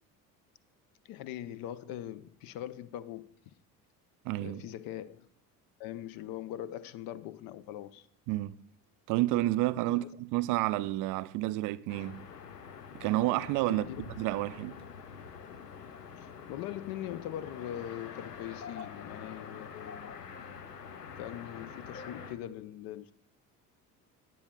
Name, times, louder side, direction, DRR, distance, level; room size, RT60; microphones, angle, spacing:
voice 1, 1.0-3.5 4.4-5.3 5.8-8.1 9.9-10.1 13.7-14.0 16.2-20.1 21.0-23.1, left 12 dB, 50° left, 0.6 m, -41 dB
voice 2, 4.2-4.6 8.3-8.5 9.1-12.2 12.9-13.8 14.2-14.7, right 17 dB, 45° right, 0.4 m, -30 dB
sound 1, 11.9-22.3, left 6 dB, 85° left, 0.7 m, -46 dB
16.5 x 9.0 x 2.3 m
figure-of-eight pair, 60°, 47 cm